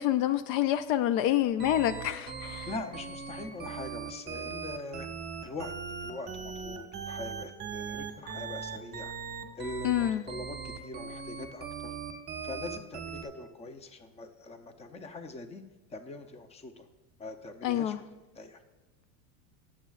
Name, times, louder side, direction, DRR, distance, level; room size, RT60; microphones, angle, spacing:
voice 1, 0.0-2.7 9.8-10.2 17.6-18.0, left 12 dB, 65° left, 13 dB, 0.6 m, -27 dB
sound 1, 1.6-13.2, right 6 dB, 25° right, 1.3 m, -39 dB
voice 2, 2.7-5.1 5.4-5.7 6.0-9.1 9.5-12.0 12.4-15.6 15.9-16.9 17.2-18.6, left 2 dB, 15° left, 8 dB, 0.6 m, -42 dB
18.5 x 7.3 x 2.4 m, 1.1 s
supercardioid pair, 125°, 42 cm